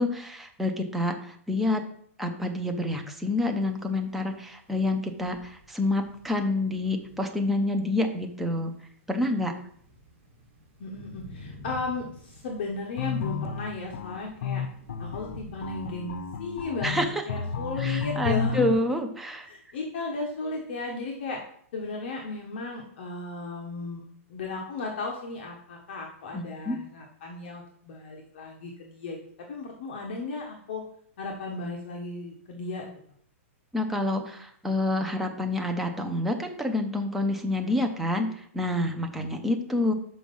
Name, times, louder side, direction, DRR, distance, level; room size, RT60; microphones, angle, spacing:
voice 1, 0.0-1.8 2.2-8.7 9.1-9.5 16.8-17.2 17.8-19.5 26.3-26.8 33.7-39.9, left 1 dB, 5° right, 4 dB, 0.5 m, -28 dB
sound 1, 3.4-15.9, left 2 dB, 35° right, 2.8 m, -49 dB
voice 2, 10.8-14.6 15.0-18.6 19.5-21.4 21.7-24.0 24.3-29.2 29.5-30.8 31.2-32.9, left 3 dB, 45° left, 0 dB, 1.2 m, -35 dB
sound 2, 13.0-18.7, left 6 dB, 70° left, 0.7 m, -31 dB
6.2 x 5.1 x 5.4 m, 0.63 s
supercardioid pair, 180°, 8 cm